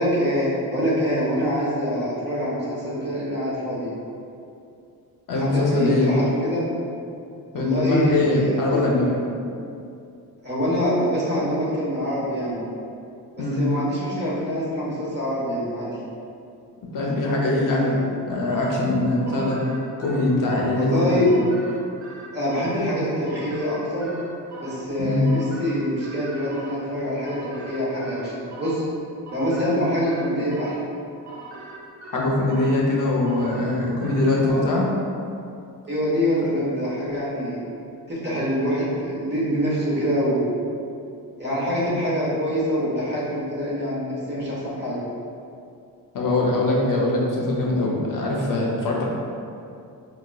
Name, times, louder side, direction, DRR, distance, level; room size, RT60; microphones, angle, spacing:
voice 1, 0.0-3.9 5.4-6.6 7.5-8.8 10.4-12.6 13.5-16.0 17.7-18.0 19.3-19.4 20.8-21.3 22.3-24.1 24.6-28.8 29.3-30.8 34.5-34.7 35.9-37.6 38.1-40.5 41.4-45.0, equal, 25° right, -8 dB, 1.1 m, -25 dB
voice 2, 5.3-6.1 7.5-9.1 13.4-13.6 16.9-18.0 18.3-19.6 20.0-21.2 25.0-25.3 32.1-34.9 46.1-49.0, left 2 dB, 60° left, -3 dB, 0.6 m, -22 dB
sound 1, 18.5-34.5, right 2 dB, 50° right, 0.5 m, -42 dB
5.0 x 2.3 x 2.3 m, 2.5 s
cardioid pair, 120°, 38 cm